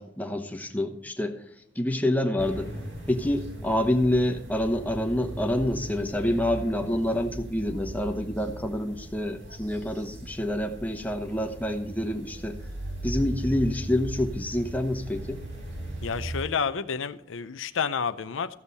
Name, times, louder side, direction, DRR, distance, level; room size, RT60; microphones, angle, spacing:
voice 1, 0.0-1.4 1.7-2.7 3.1-12.6 13.0-15.4, left 1 dB, 10° left, 5 dB, 1.0 m, -27 dB
sound 1, 2.4-16.4, right 1 dB, 70° right, 3.8 m, -38 dB
voice 2, 16.0-18.6, left 6 dB, 90° left, 12 dB, 0.6 m, -30 dB
14.5 x 7.1 x 4.1 m, 0.75 s
head